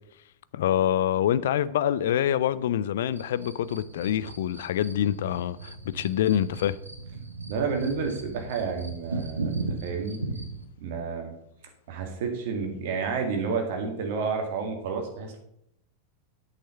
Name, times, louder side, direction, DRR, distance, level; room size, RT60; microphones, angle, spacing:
voice 1, 0.5-6.8, left 10 dB, 60° left, 0.4 m, -26 dB
sound 1, 3.1-10.6, right 3 dB, 80° right, 1.2 m, -37 dB
voice 2, 7.5-9.5 9.8-10.2 10.8-11.3 11.9-15.4, right 5 dB, 50° right, 2.1 m, -30 dB
8.4 x 6.6 x 5.7 m
figure-of-eight pair, 90°, 0 cm